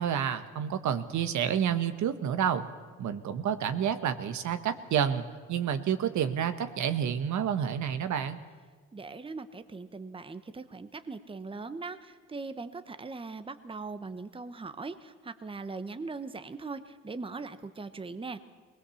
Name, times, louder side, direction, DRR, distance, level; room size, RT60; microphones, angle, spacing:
voice 1, 0.0-2.6 3.0-5.2 5.5-8.4, right 8 dB, 70° right, 10 dB, 1.2 m, -29 dB
voice 2, 8.9-18.4, right 3 dB, 15° right, 11 dB, 0.9 m, -40 dB
20.0 x 19.5 x 7.1 m, 1.5 s
cardioid pair, 90°, 30 cm